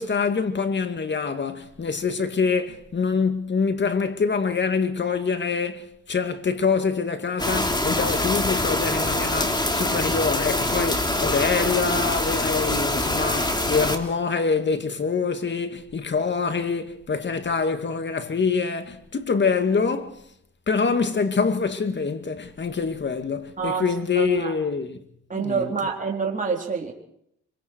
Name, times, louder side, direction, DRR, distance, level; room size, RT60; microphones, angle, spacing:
voice 1, 0.0-20.2 20.7-25.0 25.3-25.7, left 5 dB, 35° left, 2.3 m, -25 dB
sound 1, 7.4-14.0, left 1 dB, 15° left, 3.2 m, -24 dB
voice 2, 11.1-11.8 23.6-24.6 25.3-26.9, right 5 dB, 25° right, 4.0 m, -28 dB
26.0 x 24.0 x 4.7 m
cardioid pair, 90°, 30 cm